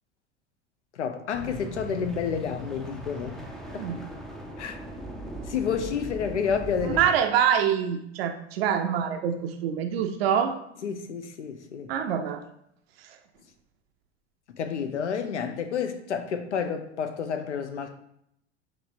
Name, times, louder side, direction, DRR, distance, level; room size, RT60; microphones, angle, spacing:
voice 1, 0.9-3.4 3.7-3.9 4.6-4.8 5.5-7.0 10.8-11.9 14.5-18.0, left 6 dB, 80° left, 0.6 m, -30 dB
sound 1, 1.3-7.1, equal, ahead, 0.4 m, -39 dB
voice 2, 6.8-10.6 11.9-12.4 13.0-13.2, right 8 dB, 60° right, 0.5 m, -25 dB
5.9 x 3.0 x 2.6 m
figure-of-eight pair, 80°, 35 cm